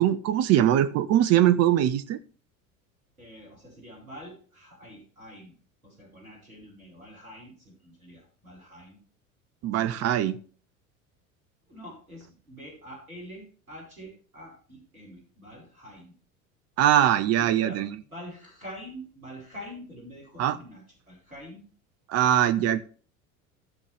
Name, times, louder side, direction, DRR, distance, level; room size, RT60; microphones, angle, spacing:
voice 1, 0.0-2.2 9.6-10.4 16.8-17.9 20.4-20.6 22.1-22.8, right 11 dB, 35° right, 11 dB, 0.9 m, -22 dB
voice 2, 3.2-5.6 5.8-9.0 9.8-10.2 11.7-16.1 17.3-21.6, equal, 85° right, -3 dB, 5.8 m, -45 dB
15.5 x 6.7 x 3.5 m, 0.42 s
figure-of-eight pair, 70°, 41 cm